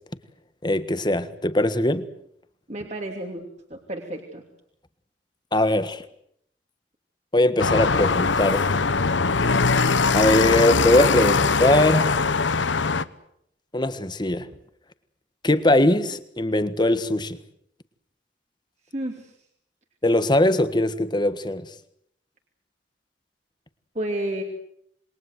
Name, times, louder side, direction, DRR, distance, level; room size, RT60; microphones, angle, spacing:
voice 1, 0.6-2.0 5.5-6.0 7.3-8.8 10.1-12.3 13.7-14.5 15.4-17.4 20.0-21.6, left 1 dB, 25° left, 12 dB, 1.5 m, -21 dB
voice 2, 2.7-3.4 3.7-4.4 18.9-19.3 23.9-24.4, right 1 dB, 40° right, 2 dB, 2.9 m, -31 dB
sound 1, 7.6-13.0, left 4 dB, 90° left, 1.0 m, -21 dB
27.5 x 22.0 x 8.0 m, 0.71 s
head